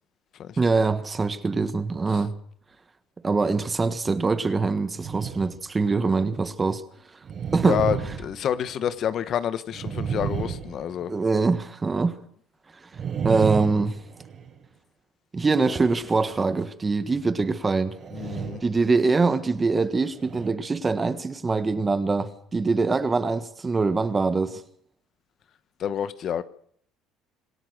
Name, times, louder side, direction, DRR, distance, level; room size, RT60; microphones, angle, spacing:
voice 1, 0.6-2.3 3.2-6.8 7.5-7.8 11.1-12.2 13.2-14.0 15.3-18.0 18.6-24.6, right 4 dB, 20° right, 1.4 m, -23 dB
sound 1, 4.9-5.7 6.1-6.2 7.2-9.1 9.7-11.4 12.9-14.6 17.9-18.8 19.2-19.4 20.1-20.5, right 7 dB, 40° right, 4.9 m, -32 dB
voice 2, 7.7-11.1 18.1-18.6 25.8-26.4, left 9 dB, 50° left, 1.1 m, -28 dB
26.5 x 17.0 x 6.5 m
cardioid pair, 125°, 0 cm